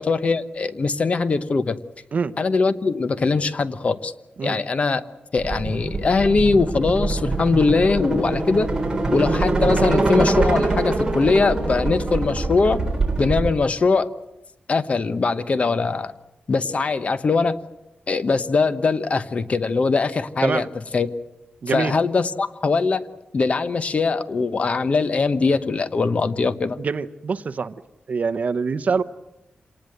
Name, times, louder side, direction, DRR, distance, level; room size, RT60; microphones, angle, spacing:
voice 1, 0.0-1.8 2.4-4.1 4.4-5.0 5.3-8.7 9.1-12.8 13.2-14.1 14.7-16.1 16.5-17.6 18.1-20.7 20.9-21.1 21.7-23.1 23.3-26.8, left 4 dB, 40° left, 12 dB, 1.0 m, -21 dB
sound 1, 5.4-13.5, right 2 dB, 20° right, 3.7 m, -23 dB
voice 2, 21.6-21.9 26.8-27.7 28.1-29.0, right 5 dB, 50° right, 13 dB, 0.8 m, -24 dB
26.5 x 19.0 x 7.9 m, 0.93 s
wide cardioid pair, 180°, 3 cm